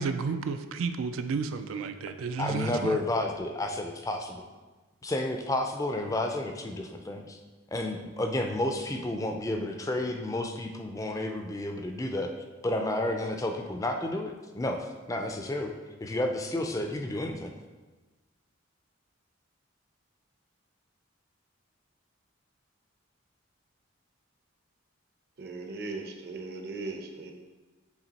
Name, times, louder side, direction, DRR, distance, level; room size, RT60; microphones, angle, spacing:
voice 1, 0.0-3.0, right 5 dB, 80° right, 9 dB, 0.3 m, -32 dB
voice 2, 2.4-4.4 5.0-7.4 7.7-12.3 12.6-15.7 16.0-17.5, left 1 dB, 15° left, 4 dB, 0.4 m, -31 dB
voice 3, 25.4-27.3, right 3 dB, 50° right, 3 dB, 0.7 m, -38 dB
7.2 x 3.3 x 4.0 m, 1.3 s
head